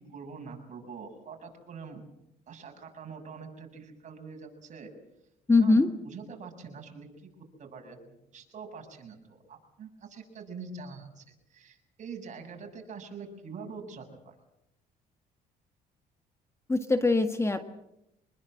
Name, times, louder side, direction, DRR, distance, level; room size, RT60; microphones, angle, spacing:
voice 1, 0.0-2.0 2.5-4.9 5.6-7.3 7.6-11.2 11.5-14.4, right 5 dB, 45° right, 4 dB, 7.0 m, -44 dB
voice 2, 5.5-5.9 16.7-17.7, left 3 dB, 15° left, 8 dB, 1.6 m, -22 dB
25.5 x 21.5 x 7.8 m, 0.84 s
cardioid pair, 110°, 17 cm